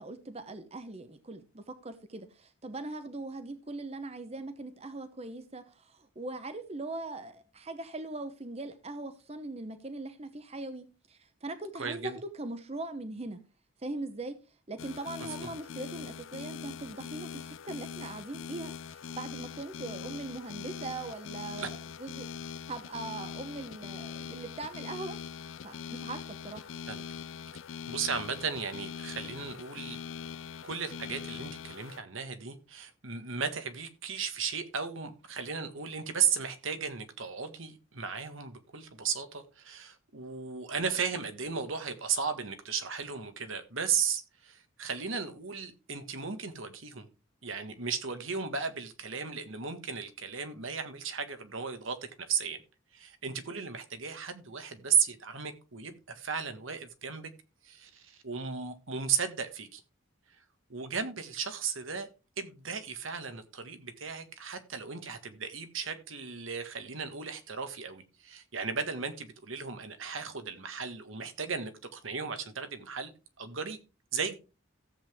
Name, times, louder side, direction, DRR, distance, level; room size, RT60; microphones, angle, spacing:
voice 1, 0.0-13.4 13.8-14.4 14.7-25.2 25.6-26.7, right 2 dB, 30° right, 0.9 m, -41 dB
voice 2, 11.8-12.2 15.4-15.5 21.6-21.7 26.9-27.0 27.9-30.0 30.6-47.1 47.4-52.6 52.9-57.3 57.6-59.8 60.7-62.1 62.4-73.1 73.4-73.8 74.1-74.3, right 6 dB, 75° right, 1.6 m, -35 dB
sound 1, 14.8-32.0, left 7 dB, 70° left, 0.5 m, -42 dB
14.0 x 8.0 x 3.6 m
head